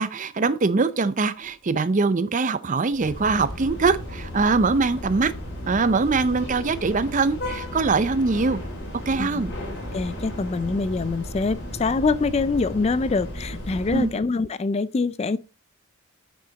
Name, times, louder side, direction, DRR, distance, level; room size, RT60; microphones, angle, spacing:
voice 1, 0.0-5.3 5.7-8.6 9.1-9.5 13.9-14.1, right 4 dB, 35° right, 0.5 m, -22 dB
sound 1, 2.9-14.1, left 1 dB, 50° left, 3.0 m, -34 dB
voice 2, 9.9-15.4, left 3 dB, 30° left, 0.3 m, -24 dB
8.6 x 6.4 x 3.9 m
head